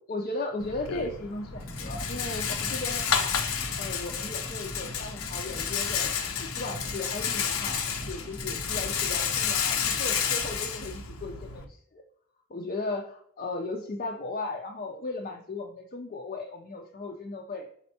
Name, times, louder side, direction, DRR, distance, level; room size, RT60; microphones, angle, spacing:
voice 1, 0.1-3.4 3.8-12.0 12.5-17.7, left 2 dB, 40° left, 0 dB, 0.5 m, -36 dB
Rattle, 0.6-11.6, left 7 dB, 80° left, 0.6 m, -31 dB
sound 1, 1.5-10.6, right 1 dB, 10° right, 0.5 m, -41 dB
4.3 x 4.2 x 2.8 m, 0.65 s
head